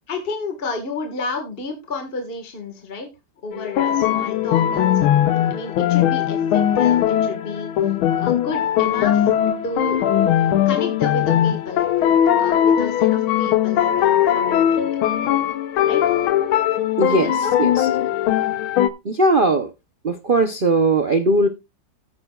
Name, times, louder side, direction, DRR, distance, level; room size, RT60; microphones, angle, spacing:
voice 1, 0.1-3.1 3.4-5.1 5.5-7.7 8.2-9.3 9.6-10.0 10.7-14.9 15.9-16.0 17.1-17.5, left 3 dB, 30° left, 6 dB, 1.7 m, -31 dB
sound 1, 3.5-18.9, left 10 dB, 80° left, 1.7 m, -19 dB
voice 2, 17.0-17.9 19.0-19.7 20.0-21.5, right 2 dB, 65° right, 8 dB, 0.5 m, -19 dB
15.5 x 8.9 x 2.4 m, 0.23 s
omnidirectional pair, 2.2 m